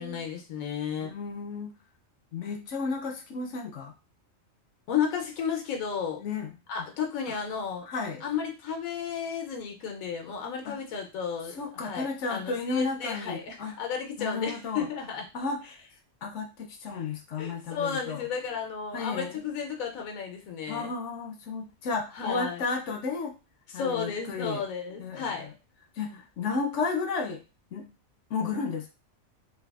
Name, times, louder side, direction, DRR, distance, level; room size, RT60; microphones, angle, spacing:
voice 1, 0.0-1.1 4.9-6.2 6.7-7.8 8.2-15.2 17.4-20.9 22.1-22.6 23.7-25.5 26.1-26.2, left 7 dB, 90° left, 2 dB, 1.1 m, -33 dB
voice 2, 1.0-1.7 2.3-3.9 6.2-6.5 6.8-6.9 7.3-7.4 7.8-8.2 10.6-10.8 11.5-13.8 14.2-14.9 15.3-15.6 16.2-18.3 18.9-19.4 20.7-23.4 23.7-24.6 25.0-25.5 25.9-27.4 27.7-27.9 28.3-28.9, left 4 dB, 70° left, 3 dB, 0.8 m, -33 dB
3.2 x 2.3 x 2.3 m, 0.31 s
omnidirectional pair, 1.4 m